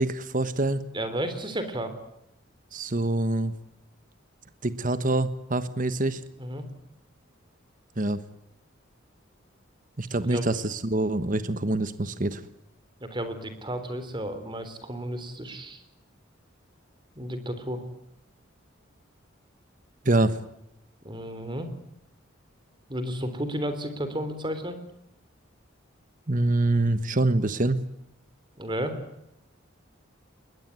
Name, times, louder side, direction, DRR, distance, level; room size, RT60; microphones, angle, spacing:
voice 1, 0.0-0.8 2.7-3.5 4.6-6.2 8.0-8.2 10.0-12.4 20.0-20.4 26.3-27.8, right 2 dB, 40° right, 13 dB, 1.2 m, -25 dB
voice 2, 0.9-1.9 6.4-6.7 10.1-10.5 13.0-15.8 17.1-17.8 21.0-21.7 22.9-24.8 28.6-29.0, equal, 25° right, 10 dB, 3.5 m, -32 dB
21.5 x 20.0 x 9.5 m, 0.82 s
head